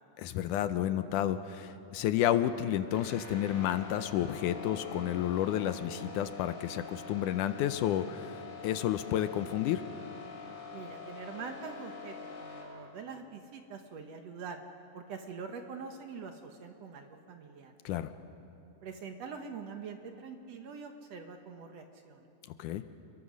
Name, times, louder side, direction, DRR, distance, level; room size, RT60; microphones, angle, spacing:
voice 1, 0.2-9.8 17.9-18.1 22.6-22.8, left 11 dB, 80° left, 11 dB, 2.1 m, -31 dB
sound 1, 2.9-12.6, left 4 dB, 30° left, 6.2 m, -45 dB
voice 2, 10.7-14.6 14.9-17.7 18.8-22.3, right 5 dB, 60° right, 5 dB, 2.0 m, -44 dB
28.0 x 22.0 x 6.3 m, 2.8 s
omnidirectional pair, 3.9 m